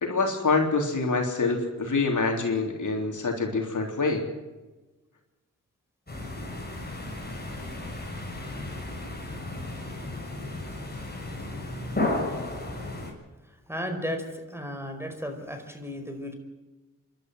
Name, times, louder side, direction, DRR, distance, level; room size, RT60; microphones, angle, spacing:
voice 1, 0.0-4.3, left 3 dB, 65° left, 2 dB, 3.7 m, -26 dB
Wind-Gusts-late-autumn-distant-gunshots-traffic-air-traffic, 6.1-13.1, left 2 dB, 30° left, 6.7 m, -34 dB
voice 2, 13.4-16.3, equal, 5° right, 6 dB, 4.8 m, -35 dB
27.0 x 12.5 x 8.0 m, 1.2 s
cardioid pair, 50°, 33 cm